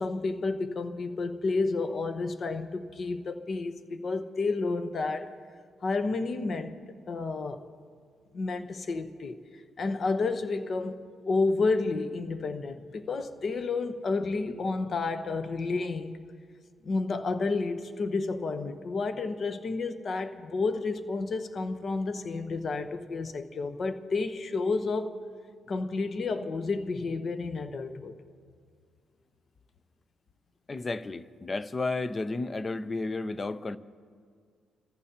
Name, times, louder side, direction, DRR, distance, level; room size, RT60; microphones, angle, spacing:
voice 1, 0.0-5.4 5.8-6.8 7.1-7.6 8.3-9.3 9.8-16.2 16.8-25.1 25.7-28.1, left 3 dB, 45° left, 1.0 m, -30 dB
voice 2, 30.7-33.8, left 3 dB, 30° left, 0.6 m, -32 dB
27.5 x 14.5 x 2.9 m
cardioid pair, 90°, 0 cm